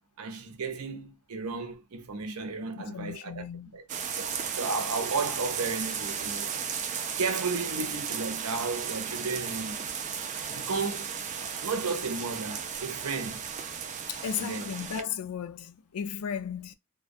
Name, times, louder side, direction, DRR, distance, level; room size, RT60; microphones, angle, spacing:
voice 1, 0.2-3.4 3.7-3.8 4.2-6.5 7.2-9.8 10.5-13.5 14.4-14.7, right 4 dB, 80° right, 0.7 m, -34 dB
voice 2, 2.8-3.7 14.1-16.8, left 7 dB, 80° left, 0.4 m, -35 dB
sound 1, 3.9-15.0, right 7 dB, 35° right, 0.4 m, -35 dB
2.3 x 2.2 x 2.5 m
head